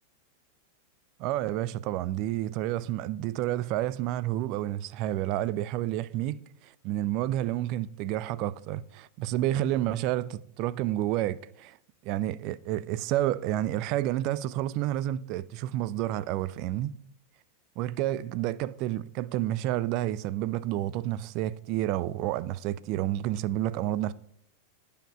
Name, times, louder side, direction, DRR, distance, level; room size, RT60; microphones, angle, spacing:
voice 1, 1.2-11.8 12.0-17.0 17.8-24.1, right 14 dB, 40° right, 0.4 m, -30 dB
10.0 x 5.1 x 5.8 m
figure-of-eight pair, 90°, 0 cm